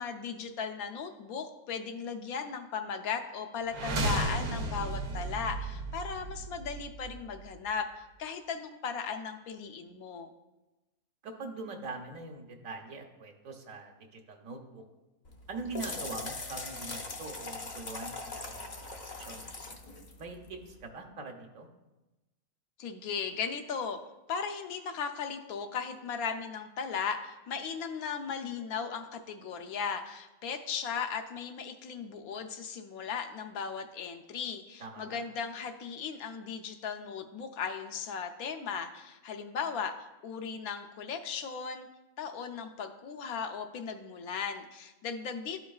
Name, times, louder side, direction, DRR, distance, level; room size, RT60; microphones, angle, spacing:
voice 1, 0.0-10.3 22.8-24.0 24.3-41.9 42.2-45.6, left 6 dB, 80° left, 6 dB, 1.1 m, -37 dB
sound 1, 3.7-7.7, right 2 dB, 85° right, 1.2 m, -34 dB
voice 2, 11.2-14.8 15.5-18.7 19.2-19.4 20.2-21.7 34.8-35.2, right 3 dB, 65° right, 2 dB, 1.2 m, -43 dB
sound 2, 15.3-20.8, left 3 dB, 45° left, 0.6 m, -41 dB
12.5 x 4.6 x 2.3 m, 1.1 s
omnidirectional pair, 1.5 m